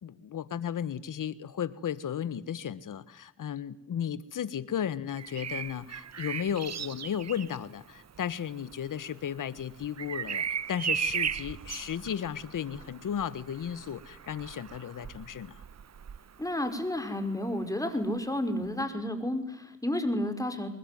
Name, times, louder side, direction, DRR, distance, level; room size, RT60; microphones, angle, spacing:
voice 1, 0.0-15.6, left 9 dB, 80° left, 16 dB, 1.5 m, -34 dB
Bird vocalization bird call bird song, 5.1-16.9 18.6-18.8, right 7 dB, 55° right, 1.1 m, -37 dB
voice 2, 16.4-20.7, left 1 dB, 10° left, 7 dB, 5.6 m, -31 dB
25.0 x 21.5 x 9.5 m, 0.83 s
cardioid pair, 75°, 31 cm